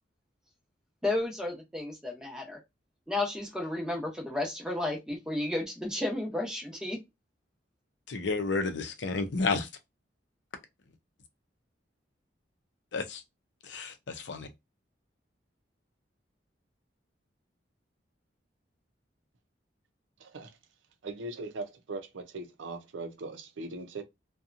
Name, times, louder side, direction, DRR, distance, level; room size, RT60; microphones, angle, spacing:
voice 1, 1.0-2.6 3.1-7.0, left 2 dB, 5° right, 0.8 m, -32 dB
voice 2, 8.1-9.7 12.9-13.2 13.7-13.9 14.3-14.5, left 3 dB, 70° left, 0.5 m, -30 dB
voice 3, 20.2-20.6 21.0-24.0, right 3 dB, 85° right, 0.5 m, -40 dB
2.7 x 2.3 x 2.4 m
head